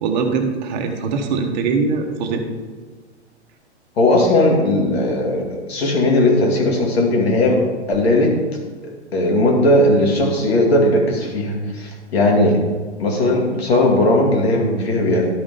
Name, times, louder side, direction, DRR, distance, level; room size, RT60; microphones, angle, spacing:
voice 1, 0.0-2.4, right 4 dB, 40° right, 4 dB, 1.3 m, -22 dB
voice 2, 4.0-7.6 7.9-8.3 9.1-12.6 13.0-15.3, left 1 dB, 65° left, 0 dB, 2.3 m, -17 dB
12.5 x 5.1 x 3.7 m, 1.4 s
figure-of-eight pair, 115°, 34 cm